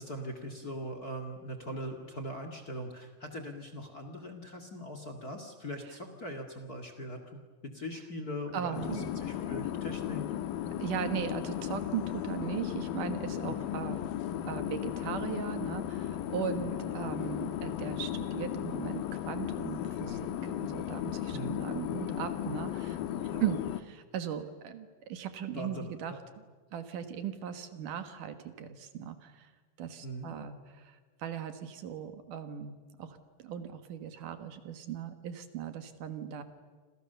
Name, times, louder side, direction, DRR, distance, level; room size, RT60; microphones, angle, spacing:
voice 1, 0.0-10.2 13.4-13.6 16.6-16.8 21.3-21.6 23.3-23.4 25.5-26.2 30.0-30.3, equal, 30° left, 6 dB, 2.1 m, -41 dB
voice 2, 8.5-9.1 10.8-14.1 14.4-23.0 23.4-26.2 26.7-29.5 29.8-36.4, right 8 dB, 70° right, 9 dB, 2.9 m, -38 dB
sound 1, 8.7-23.8, left 11 dB, 85° left, 2.7 m, -35 dB
29.5 x 27.0 x 6.9 m, 1.4 s
omnidirectional pair, 4.0 m